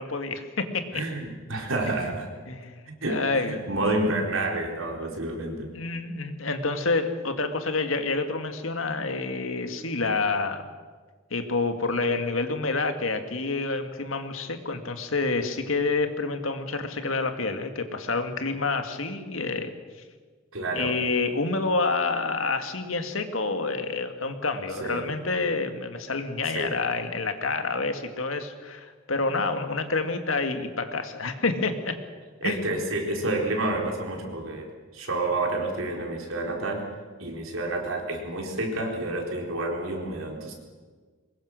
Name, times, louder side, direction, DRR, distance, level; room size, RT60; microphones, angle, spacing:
voice 1, 0.0-0.8 2.5-2.8 3.1-3.6 5.7-10.7 11.3-19.8 20.7-31.9 32.4-32.7, left 3 dB, 80° left, 7 dB, 2.0 m, -28 dB
voice 2, 0.9-2.3 2.9-5.7 20.5-21.0 24.8-25.0 26.5-26.7 32.4-34.7 34.9-36.9 37.2-40.5, right 2 dB, 80° right, 1 dB, 4.1 m, -29 dB
23.5 x 21.0 x 6.5 m, 1.5 s
head